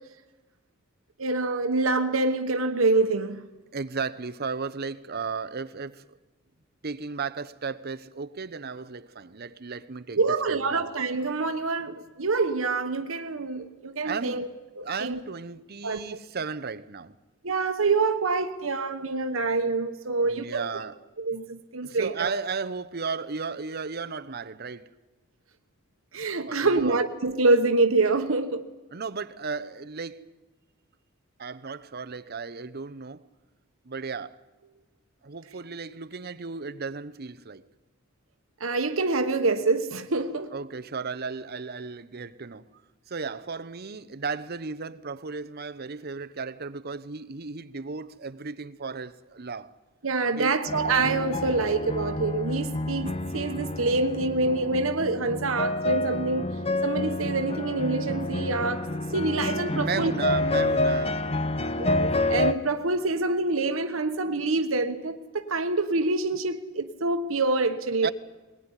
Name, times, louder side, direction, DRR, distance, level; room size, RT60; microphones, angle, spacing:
voice 1, 1.2-3.5 10.2-14.5 14.8-15.2 15.8-16.0 17.4-20.8 21.2-22.3 26.1-28.6 38.6-40.5 50.0-56.5 56.8-60.1 61.8-68.1, right 3 dB, 85° right, 1.2 m, -26 dB
voice 2, 3.7-6.2 6.8-10.9 14.0-14.4 14.8-17.1 20.2-21.0 21.8-24.9 26.4-27.0 28.9-30.2 31.4-33.2 33.8-34.4 35.2-37.7 40.5-42.7 43.1-49.7 50.4-50.6 59.7-61.2 68.0-68.1, right 5 dB, 50° right, 0.9 m, -35 dB
sound 1, 50.7-62.5, left 2 dB, 30° left, 1.0 m, -28 dB
21.0 x 19.5 x 9.9 m
head